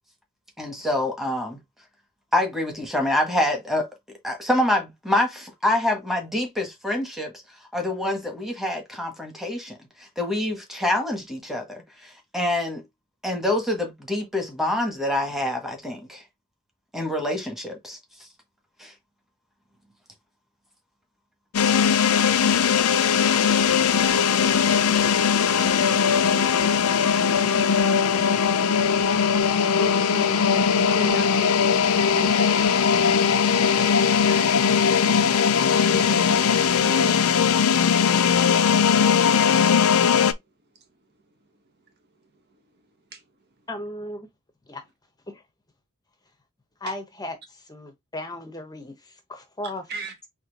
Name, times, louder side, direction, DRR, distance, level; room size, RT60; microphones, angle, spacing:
voice 1, 0.6-1.6 2.3-3.9 4.2-7.3 7.7-12.8 13.2-16.2 16.9-18.0 18.8-18.9, left 1 dB, ahead, 1.4 m, -26 dB
sound 1, 21.5-40.3, left 7 dB, 80° left, 0.5 m, -20 dB
voice 2, 29.8-34.7 35.0-37.3 40.7-40.9 41.3-41.4 42.2-42.4 42.7-42.8 43.1-43.2 46.8-46.9 49.9-50.2, right 3 dB, 50° right, 1.1 m, -38 dB
voice 3, 43.7-44.3 44.7-44.8 45.3-45.4 46.8-50.3, left 1 dB, 20° left, 0.8 m, -36 dB
4.3 x 2.9 x 4.0 m
head